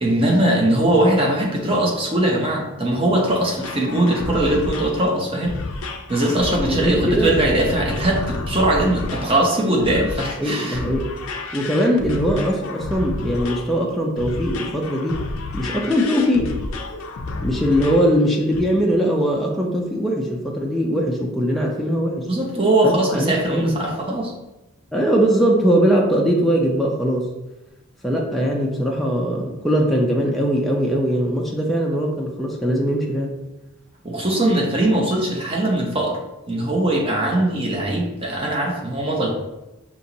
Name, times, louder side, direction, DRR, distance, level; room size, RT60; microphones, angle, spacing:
voice 1, 0.0-5.5 6.1-10.8 22.3-24.3 34.0-36.2 36.5-39.3, right 1 dB, 25° right, -1 dB, 0.8 m, -20 dB
sound 1, 3.6-18.1 18.5-18.6, left 2 dB, 70° left, 0.5 m, -30 dB
voice 2, 6.7-7.3 10.4-11.1 11.5-15.2 15.5-16.6 17.4-22.3 22.8-23.8 24.9-27.3 28.0-33.3, equal, ahead, -3 dB, 0.4 m, -21 dB
5.6 x 2.9 x 2.7 m, 0.98 s
head